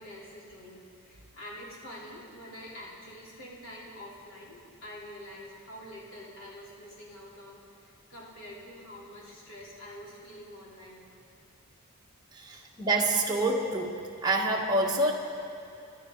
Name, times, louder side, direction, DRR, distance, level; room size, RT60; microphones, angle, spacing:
voice 1, 0.0-11.0 12.5-12.6, equal, 65° left, -6 dB, 3.5 m, -46 dB
voice 2, 12.3-14.0 14.2-15.1, right 2 dB, 20° right, -2 dB, 1.4 m, -27 dB
25.0 x 12.0 x 3.9 m, 2.6 s
head